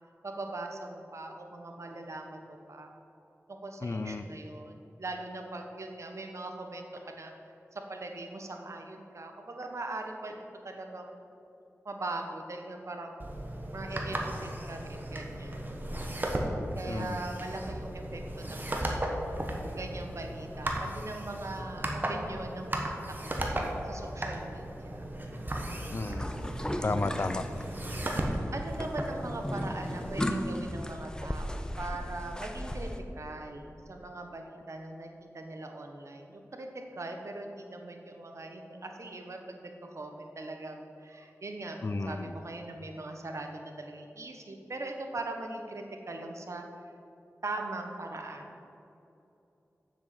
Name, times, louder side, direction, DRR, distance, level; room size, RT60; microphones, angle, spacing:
voice 1, 0.2-2.9 3.5-7.3 7.7-11.2 11.8-13.3 13.7-15.7 16.8-25.1 27.1-27.7 28.5-41.8 42.0-46.6 47.4-48.6, right 2 dB, 65° right, 3 dB, 1.2 m, -41 dB
voice 2, 3.8-4.2 16.9-17.2 25.9-26.3 26.8-27.4 41.8-42.3, left 3 dB, 50° left, 11 dB, 0.4 m, -32 dB
sound 1, 13.2-30.2, right 1 dB, 35° right, 1.4 m, -36 dB
sound 2, 26.2-33.0, left 1 dB, 15° left, 0.7 m, -36 dB
7.4 x 7.1 x 7.7 m, 2.8 s
wide cardioid pair, 70°, 5 cm